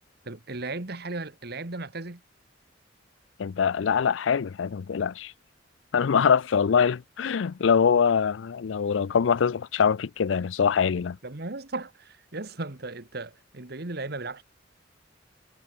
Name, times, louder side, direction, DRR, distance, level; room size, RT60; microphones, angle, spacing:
voice 1, 0.3-2.2 11.2-14.4, right 2 dB, 60° right, 1.8 m, -36 dB
voice 2, 3.4-5.3 5.9-11.2, left 6 dB, 80° left, 0.4 m, -23 dB
head